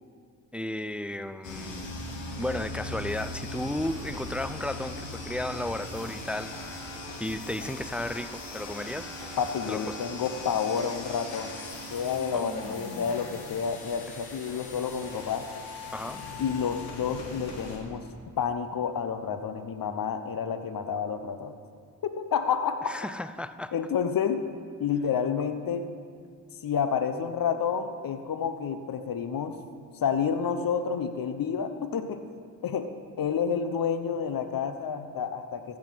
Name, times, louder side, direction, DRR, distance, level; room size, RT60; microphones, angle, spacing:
voice 1, 0.5-1.9 2.4-6.9 7.2-9.1 9.7-10.0 12.3-12.4 15.9-16.2 22.9-23.7, left 1 dB, 5° right, 13 dB, 0.4 m, -34 dB
sound 1, 1.4-17.8, left 2 dB, 85° left, 1.7 m, -39 dB
voice 2, 9.4-11.6 11.9-15.5 16.4-18.0 18.4-21.5 22.0-22.9 23.7-25.8 26.6-29.6 30.0-32.2 32.6-32.9 33.2-35.8, left 7 dB, 50° left, 9 dB, 1.0 m, -29 dB
15.0 x 7.6 x 5.8 m, 2.1 s
supercardioid pair, 45°, 43 cm